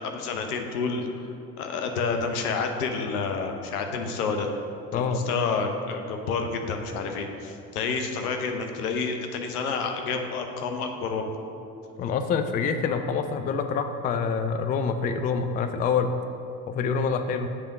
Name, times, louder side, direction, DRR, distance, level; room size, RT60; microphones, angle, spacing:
voice 1, 0.0-4.5 4.9-11.2, left 4 dB, 75° left, 4 dB, 0.9 m, -29 dB
voice 2, 4.9-5.3 12.0-16.1 16.7-17.5, left 5 dB, 20° left, 8 dB, 0.3 m, -26 dB
8.2 x 3.5 x 5.9 m, 2.6 s
hypercardioid pair, 65°, 46 cm